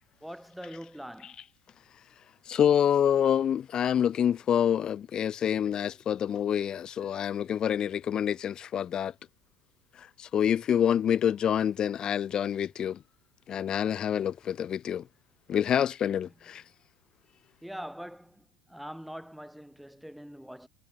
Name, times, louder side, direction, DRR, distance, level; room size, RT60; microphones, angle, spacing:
voice 1, 0.2-1.4 17.6-20.7, equal, ahead, 6.1 m, -43 dB
voice 2, 2.5-9.1 10.2-13.0 13.5-15.0 15.5-16.6, left 9 dB, 40° left, 1.0 m, -27 dB
hypercardioid pair, 85°, 2 cm